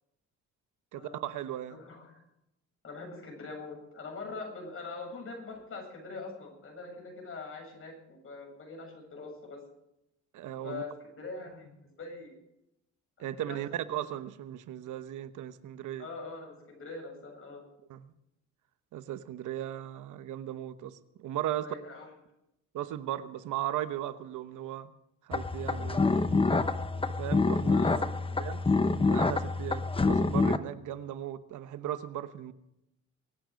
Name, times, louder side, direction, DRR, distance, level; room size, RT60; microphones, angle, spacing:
voice 1, 0.9-1.8 10.3-10.8 13.2-16.1 17.9-18.1 18.9-21.7 22.7-24.9 25.2-26.7 27.2-27.8 28.4-28.6 29.1-32.5, right 12 dB, 80° right, 12 dB, 1.1 m, -37 dB
voice 2, 1.7-2.0 2.8-9.6 10.6-12.4 13.2-13.6 13.9-14.0 16.0-17.6 21.6-22.1 27.7-28.0, left 3 dB, 45° left, 0 dB, 7.9 m, -43 dB
sound 1, 25.3-30.6, left 3 dB, 20° left, 0.9 m, -27 dB
24.0 x 9.2 x 5.2 m, 0.84 s
cardioid pair, 90°, 30 cm